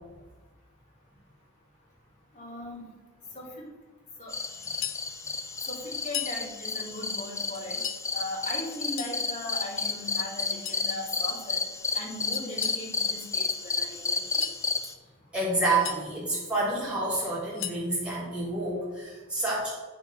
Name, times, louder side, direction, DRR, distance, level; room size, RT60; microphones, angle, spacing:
voice 1, 2.3-2.9 3.3-3.5 4.2-4.3 5.7-7.8 8.1-11.6 11.9-14.4, left 1 dB, 35° left, -5 dB, 2.8 m, -38 dB
sound 1, 4.3-14.9, left 4 dB, 15° left, 0.5 m, -32 dB
sound 2, 4.6-5.1 6.0-6.4 7.5-8.0 8.7-9.2 10.4-10.9 12.3-12.8 14.2-14.6 15.5-16.0 17.3-17.9, left 11 dB, 65° left, 0.7 m, -37 dB
voice 2, 15.3-19.7, right 2 dB, 5° right, -8 dB, 2.8 m, -28 dB
9.6 x 4.5 x 5.4 m, 1.3 s
head